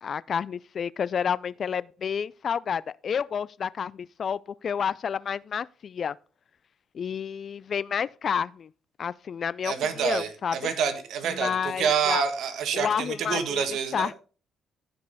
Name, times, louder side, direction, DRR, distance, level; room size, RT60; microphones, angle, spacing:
voice 1, 0.0-6.2 6.9-8.7 9.0-10.7 11.3-12.2 12.7-13.6 13.9-14.2, left 7 dB, 50° left, 0.3 m, -30 dB
voice 2, 9.6-14.1, right 7 dB, 75° right, 1.6 m, -27 dB
15.0 x 5.3 x 4.1 m
cardioid pair, 90°, 0 cm